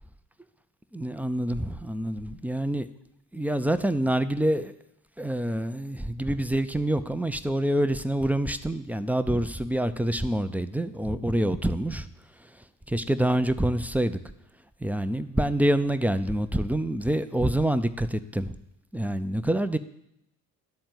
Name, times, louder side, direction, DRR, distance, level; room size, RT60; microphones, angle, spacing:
voice 1, 0.9-2.9 3.3-4.7 5.2-12.1 12.9-14.2 14.8-18.6 18.9-19.8, right 1 dB, 5° right, 10 dB, 0.5 m, -26 dB
12.0 x 4.3 x 7.7 m, 0.80 s
hypercardioid pair, 50°, 47 cm